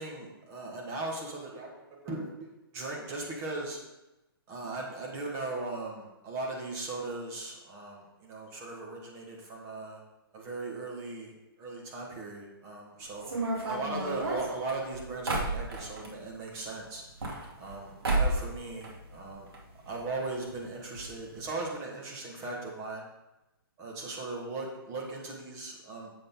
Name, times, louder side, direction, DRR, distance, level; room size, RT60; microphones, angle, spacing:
voice 1, 0.0-1.7 2.0-2.3 2.7-3.8 4.5-10.0 10.3-13.3 13.6-19.5 19.8-23.1 23.8-26.1, right 3 dB, 20° right, -2 dB, 1.6 m, -38 dB
sound 1, 13.2-16.1 17.0-17.8 18.0-18.5 18.8-19.6 19.9-20.0 20.2-20.3 20.9-21.1 21.3-21.5, right 2 dB, 75° right, 2.3 m, -31 dB
7.7 x 6.8 x 3.8 m, 0.96 s
hypercardioid pair, 155°, 13 cm